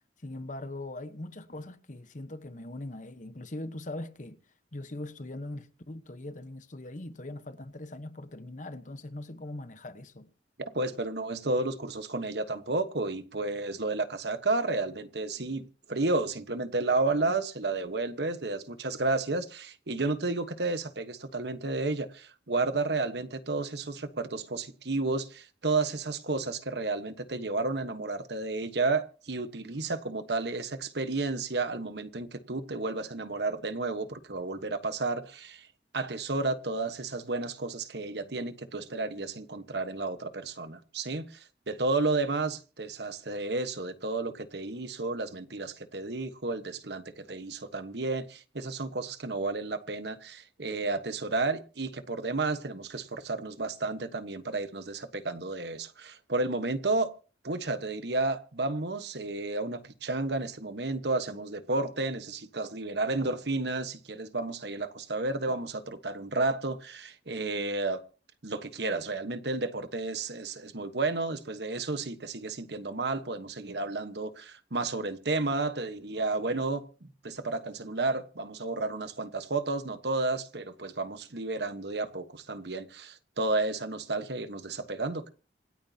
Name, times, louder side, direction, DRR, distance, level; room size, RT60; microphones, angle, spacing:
voice 1, 0.2-4.4 4.7-10.3, left 1 dB, 45° left, 1.1 m, -41 dB
voice 2, 10.7-35.7 35.9-57.1 57.4-68.0 68.4-85.3, right 3 dB, 70° right, 1.3 m, -32 dB
26.5 x 9.2 x 2.8 m
head